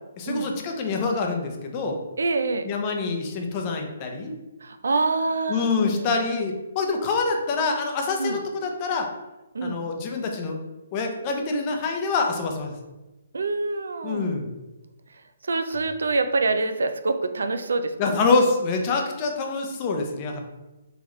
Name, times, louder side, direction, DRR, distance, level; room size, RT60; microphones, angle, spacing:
voice 1, 0.2-2.0 2.6-4.3 5.5-9.1 9.6-10.6 10.9-12.7 14.0-14.5 18.0-20.4, left 4 dB, 30° left, 3 dB, 0.6 m, -26 dB
voice 2, 2.2-2.7 4.6-6.2 8.2-8.4 9.5-9.9 13.3-14.4 15.4-17.9, right 3 dB, 80° right, 8 dB, 0.4 m, -26 dB
3.9 x 2.9 x 3.1 m, 1.0 s
hypercardioid pair, 150°, 0 cm